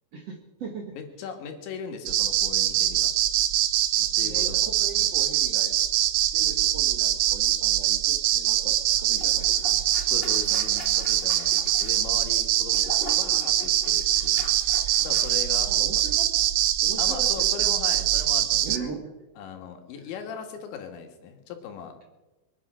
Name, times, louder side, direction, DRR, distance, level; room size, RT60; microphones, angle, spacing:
voice 1, 0.1-1.0 4.2-5.7 6.3-10.1 15.6-16.3 16.8-18.1 18.6-19.1 19.9-20.1, right 5 dB, 55° right, 2 dB, 1.8 m, -40 dB
voice 2, 0.9-3.1 4.0-4.7 5.0-5.1 10.1-14.5 15.0-15.7 17.0-19.0 19.4-21.9, left 7 dB, 90° left, 5 dB, 4.1 m, -39 dB
sound 1, 2.1-18.8, right 12 dB, 80° right, 2.1 m, -23 dB
sound 2, 9.2-15.7 16.0-16.2, left 1 dB, 35° left, 0.8 m, -43 dB
23.0 x 9.2 x 6.2 m, 1.1 s
omnidirectional pair, 5.1 m